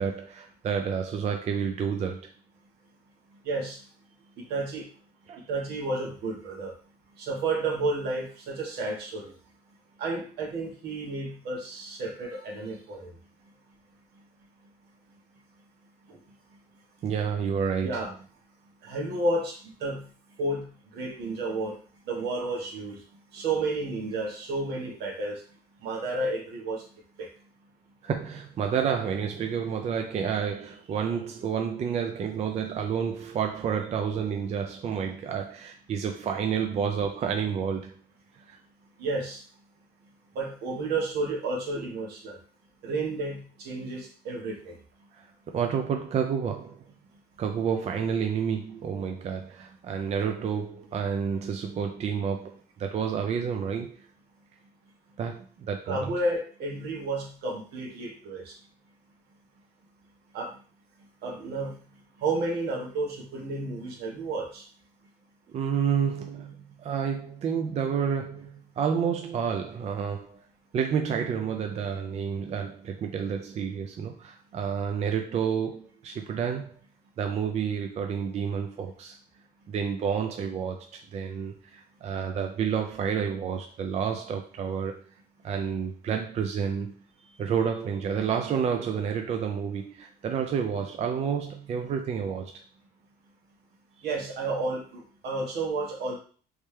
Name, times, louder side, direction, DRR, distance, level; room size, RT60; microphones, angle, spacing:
voice 1, 0.0-2.3 5.3-5.4 17.0-18.1 28.0-37.9 38.5-38.6 45.1-46.8 47.4-54.1 55.2-56.1 65.5-70.4 70.7-76.7 77.2-79.2 79.7-85.0 85.4-92.5 94.0-94.1, right 7 dB, 40° right, 4 dB, 0.4 m, -30 dB
voice 2, 3.4-3.8 4.5-4.9 5.5-6.7 7.2-9.3 10.0-13.1 17.8-18.1 18.8-20.0 20.4-20.7 20.9-21.8 22.1-23.0 23.3-25.4 25.8-26.8 27.2-27.3 39.0-39.4 40.3-42.4 42.8-44.8 55.9-58.5 60.3-60.5 61.2-61.7 62.2-64.6 94.0-96.2, right 2 dB, 75° right, -1 dB, 1.3 m, -31 dB
3.3 x 3.2 x 3.2 m, 0.41 s
cardioid pair, 110°, 17 cm